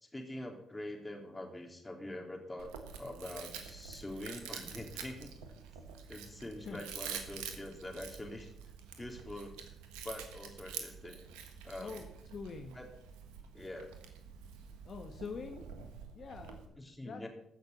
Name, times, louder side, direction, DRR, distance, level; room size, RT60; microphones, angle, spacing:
voice 1, 0.0-5.3 6.1-8.5 9.0-9.6 10.0-11.2 11.6-12.0 12.8-12.9 13.5-13.9 16.8-17.3, left 1 dB, 20° left, 2 dB, 3.5 m, -44 dB
Chewing mastication, 2.6-16.7, right 7 dB, 85° right, 1.4 m, -47 dB
voice 2, 11.8-12.8 14.8-15.7 16.1-17.3, left 5 dB, 55° left, 4 dB, 1.3 m, -45 dB
15.0 x 6.6 x 7.0 m, 0.78 s
hypercardioid pair, 50°, 0 cm